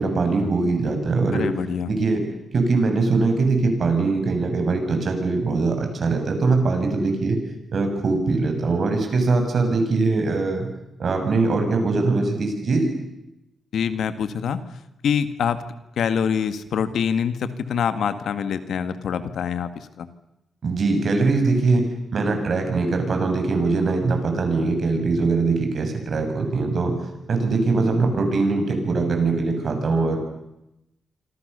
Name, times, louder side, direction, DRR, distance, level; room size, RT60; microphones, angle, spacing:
voice 1, 0.0-1.5 1.9-2.2 2.5-7.4 7.7-10.7 11.0-12.9 20.6-21.8 22.1-26.9 27.3-30.2, right 3 dB, 55° right, 5 dB, 7.1 m, -22 dB
voice 2, 1.3-1.9 13.7-14.6 15.0-15.6 16.0-20.1, left 7 dB, 80° left, 11 dB, 1.9 m, -25 dB
27.5 x 25.5 x 6.9 m, 0.89 s
cardioid pair, 110°, 0 cm